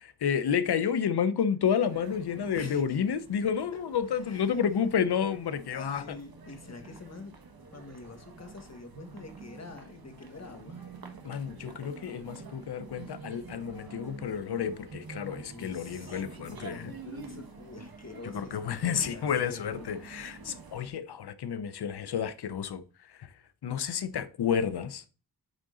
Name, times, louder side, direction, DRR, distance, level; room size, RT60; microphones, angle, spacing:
voice 1, 0.2-6.0 11.2-16.9 18.2-22.8 23.6-25.0, left 7 dB, 85° left, 0.7 m, -30 dB
sound 1, 1.8-20.9, right 4 dB, 65° right, 1.3 m, -48 dB
voice 2, 2.5-3.0 4.2-4.4 5.7-7.3 7.7-10.8 15.4-19.9 20.3-20.4, left 3 dB, 45° left, 1.5 m, -46 dB
8.8 x 3.7 x 3.7 m
cardioid pair, 55°, 38 cm